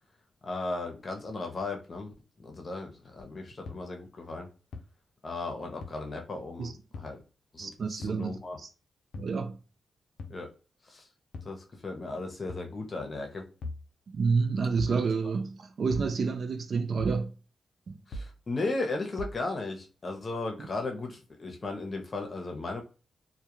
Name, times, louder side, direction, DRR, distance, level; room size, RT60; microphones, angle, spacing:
voice 1, 0.4-4.5 5.2-7.2 7.5-8.6 10.3-10.5 10.9-11.1 11.4-13.5 18.1-22.8, left 3 dB, 45° left, 0.7 m, -36 dB
sound 1, 3.7-3.8 4.7-4.8 5.8-5.9 6.9-7.1 8.0-8.2 9.1-9.3 10.2-10.4 11.3-11.6 12.5-12.7 13.6-13.8 14.8-15.0 15.9-16.1 17.0-17.2 18.1-18.3 19.2-19.4, left 1 dB, 80° left, 0.4 m, -39 dB
voice 2, 7.6-8.7 9.2-9.6 14.1-17.3 17.9-18.0, right 5 dB, 60° right, 0.4 m, -29 dB
2.2 x 2.2 x 2.9 m
cardioid pair, 60°, 0 cm